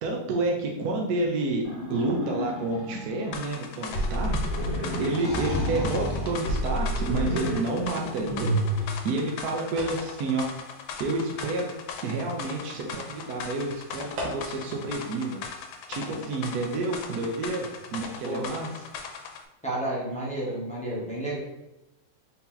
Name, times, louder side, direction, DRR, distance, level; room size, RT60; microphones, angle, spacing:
voice 1, 0.0-10.5 11.0-11.7 12.0-15.4 15.9-18.8, right 2 dB, 70° right, 0 dB, 0.9 m, -29 dB
sound 1, 1.6-3.3 3.9-8.8, equal, 45° left, 0.7 m, -29 dB
sound 2, 3.3-19.4, left 6 dB, 90° left, 1.4 m, -39 dB
voice 2, 4.7-5.1 18.2-18.5 19.6-21.4, right 1 dB, 5° left, -7 dB, 0.6 m, -31 dB
sound 3, 8.4-14.8, equal, 85° right, 1.8 m, -44 dB
4.1 x 2.8 x 3.7 m, 0.95 s
omnidirectional pair, 2.1 m